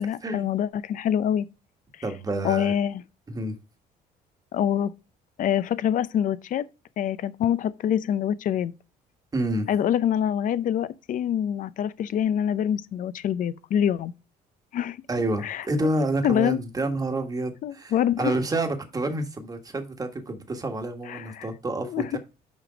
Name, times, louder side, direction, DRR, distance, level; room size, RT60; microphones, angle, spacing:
voice 1, 0.0-1.5 2.4-3.0 4.5-4.9 5.4-6.7 7.0-8.7 9.7-14.1 14.7-15.0 15.4-15.6 16.2-16.6 17.6-18.3 21.1-21.5 21.9-22.0, left 9 dB, 50° left, 0.5 m, -25 dB
voice 2, 2.0-2.7 3.3-3.5 9.3-9.7 15.1-22.2, right 2 dB, 20° right, 1.5 m, -28 dB
6.3 x 5.0 x 5.0 m
cardioid pair, 110°, 17 cm